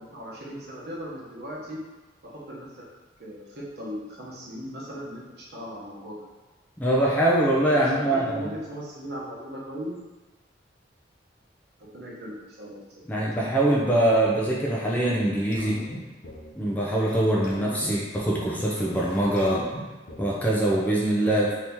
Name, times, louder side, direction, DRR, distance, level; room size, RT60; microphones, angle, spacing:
voice 1, 0.0-1.8 2.5-2.8 3.2-6.3 7.7-9.9 11.8-12.8 13.1-13.3 17.7-18.0 21.2-21.6, equal, 60° right, -6 dB, 0.9 m, -38 dB
voice 2, 6.8-8.5 13.1-15.8 16.6-19.7 20.2-21.5, right 1 dB, 10° left, -4 dB, 0.4 m, -23 dB
sound 1, 15.5-16.5 17.1-17.2 17.4-18.4 18.8-20.4, equal, 50° left, 0.6 m, -40 dB
2.9 x 2.8 x 3.5 m, 1.2 s
head